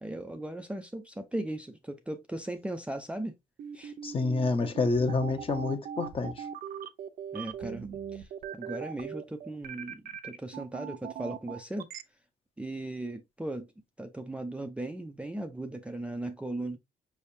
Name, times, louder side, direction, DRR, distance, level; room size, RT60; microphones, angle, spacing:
voice 1, 0.0-3.3 3.7-3.9 7.3-8.3 8.5-11.9 12.6-13.7 14.0-16.8, right 1 dB, 5° right, 0.5 m, -37 dB
sound 1, 3.6-12.0, right 8 dB, 60° right, 0.7 m, -40 dB
voice 2, 4.0-6.4, left 3 dB, 35° left, 1.0 m, -28 dB
5.3 x 3.4 x 2.7 m
cardioid pair, 110°, 17 cm